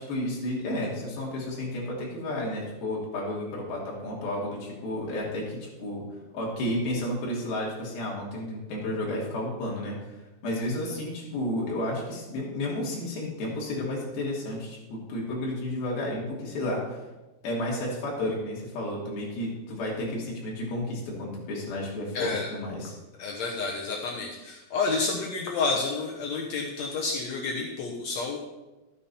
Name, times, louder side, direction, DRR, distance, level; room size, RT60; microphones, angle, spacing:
voice 1, 0.0-6.1 6.3-10.1 10.4-17.0 17.4-22.9, left 1 dB, 65° left, -3 dB, 4.5 m, -32 dB
voice 2, 22.1-22.5 23.2-28.4, left 4 dB, 85° left, -1 dB, 1.5 m, -30 dB
13.0 x 9.1 x 4.3 m, 1.1 s
omnidirectional pair, 4.7 m